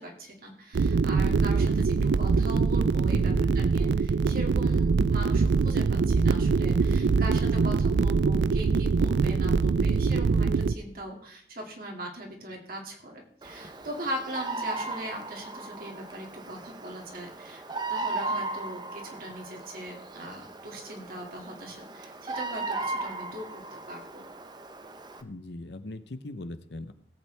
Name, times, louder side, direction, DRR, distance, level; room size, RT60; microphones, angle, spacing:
voice 1, 0.0-17.6 17.9-24.2, right 1 dB, 50° right, 1 dB, 2.3 m, -40 dB
sound 1, 0.7-10.7, right 4 dB, 80° right, 0.4 m, -23 dB
voice 2, 3.1-3.6 25.2-26.9, left 2 dB, 70° left, 12 dB, 0.8 m, -39 dB
Bird vocalization bird call bird song, 13.4-25.2, right 3 dB, 25° right, 0.7 m, -37 dB
17.5 x 8.4 x 3.4 m, 0.64 s
head